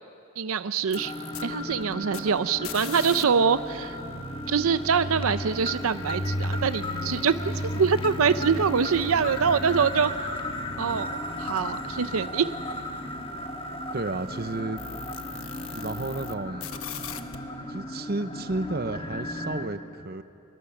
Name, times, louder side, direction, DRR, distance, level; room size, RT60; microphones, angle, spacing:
voice 1, 0.4-1.1 1.4-4.0 4.5-10.1 10.8-12.6, right 6 dB, 80° right, 13 dB, 0.5 m, -24 dB
sound 1, 0.8-3.2 3.5-16.3 16.6-17.4, left 7 dB, 75° left, 1.1 m, -44 dB
sound 2, 0.9-19.7, left 1 dB, 25° left, 1.5 m, -34 dB
voice 2, 13.9-14.8 15.7-16.7 17.7-20.2, right 2 dB, 45° right, 11 dB, 0.8 m, -32 dB
26.0 x 23.0 x 7.2 m, 2.7 s
head